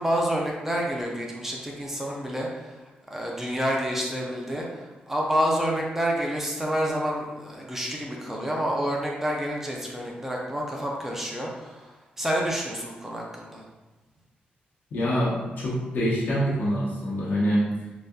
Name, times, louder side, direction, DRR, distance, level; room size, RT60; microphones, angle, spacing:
voice 1, 0.0-2.8 3.1-11.8 12.2-13.6, equal, 10° right, -2 dB, 0.6 m, -28 dB
voice 2, 14.9-17.7, equal, 75° left, -6 dB, 1.1 m, -25 dB
4.0 x 2.5 x 2.3 m, 1.2 s
cardioid pair, 100°, 3 cm